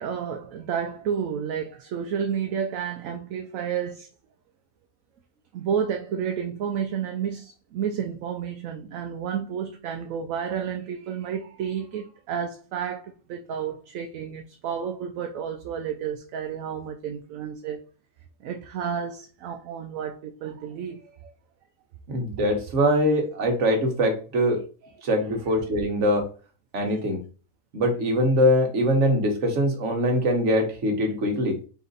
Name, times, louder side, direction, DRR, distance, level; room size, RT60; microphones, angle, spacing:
voice 1, 0.0-4.1 5.5-17.9 18.4-21.3, right 7 dB, 75° right, 1.0 m, -31 dB
voice 2, 22.1-24.6 25.0-26.3 26.7-27.2 27.7-31.6, equal, 60° right, 1.4 m, -22 dB
4.1 x 2.6 x 3.9 m
omnidirectional pair, 1.5 m